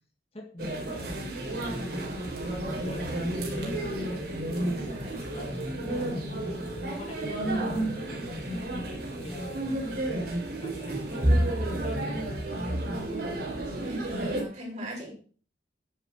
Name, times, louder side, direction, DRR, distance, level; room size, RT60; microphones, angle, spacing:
voice 1, 0.3-12.8 13.7-13.9, left 1 dB, 30° left, 2 dB, 1.9 m, -43 dB
sound 1, 0.6-14.4, right 1 dB, 55° right, 3.5 m, -31 dB
voice 2, 4.6-5.2 12.6-12.7 13.8-15.1, equal, 40° right, -2 dB, 4.8 m, -40 dB
9.5 x 7.6 x 6.4 m, 0.41 s
head